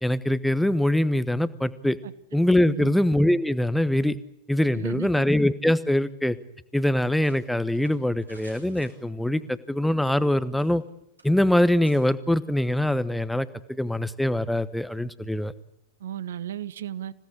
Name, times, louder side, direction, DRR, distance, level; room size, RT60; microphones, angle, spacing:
voice 1, 0.0-2.0 2.3-4.1 4.5-6.4 6.7-10.8 11.2-15.5, left 1 dB, 5° left, 1.0 m, -23 dB
voice 2, 2.7-3.0 4.7-5.2 16.0-17.1, right 11 dB, 60° right, 1.0 m, -34 dB
sound 1, 7.2-9.4 10.0-10.9 11.2-11.3 11.8-12.0, right 2 dB, 85° right, 7.3 m, -54 dB
26.5 x 17.0 x 8.7 m
figure-of-eight pair, 90°, 0 cm